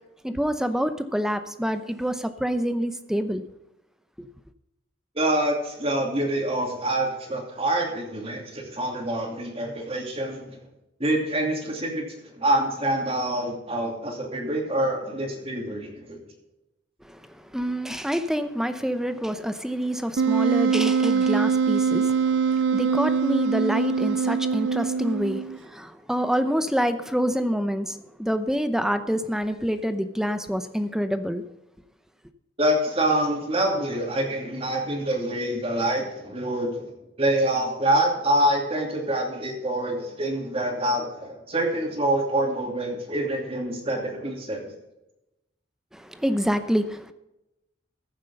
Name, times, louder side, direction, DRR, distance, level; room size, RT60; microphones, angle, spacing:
voice 1, 0.2-3.4 17.5-22.1 22.7-31.4 45.9-47.1, equal, 5° right, 0.7 m, -27 dB
voice 2, 5.2-10.6 11.0-12.1 12.3-16.2 32.6-36.7 37.2-44.7, right 1 dB, 30° right, 2.6 m, -26 dB
Wind instrument woodwind instrument, 20.2-25.6, right 6 dB, 65° right, 0.5 m, -23 dB
15.0 x 7.5 x 5.4 m
head